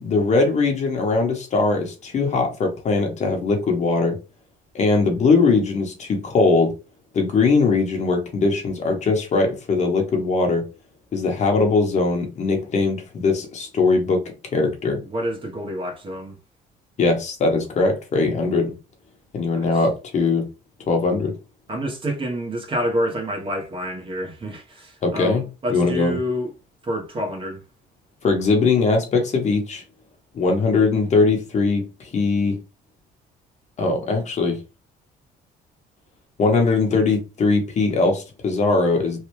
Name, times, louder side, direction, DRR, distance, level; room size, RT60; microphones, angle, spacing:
voice 1, 0.0-4.2 4.7-6.7 7.1-10.6 11.1-14.2 14.5-15.0 17.0-18.7 19.3-20.4 20.9-21.3 25.0-25.4 25.7-26.2 28.2-29.8 30.3-32.6 33.8-34.6 36.4-39.2, left 3 dB, 45° left, 1.0 m, -20 dB
voice 2, 15.0-16.4 19.6-19.7 21.7-26.5 26.8-27.6, equal, 30° right, 1.0 m, -28 dB
3.2 x 2.3 x 3.0 m
cardioid pair, 110°, 17 cm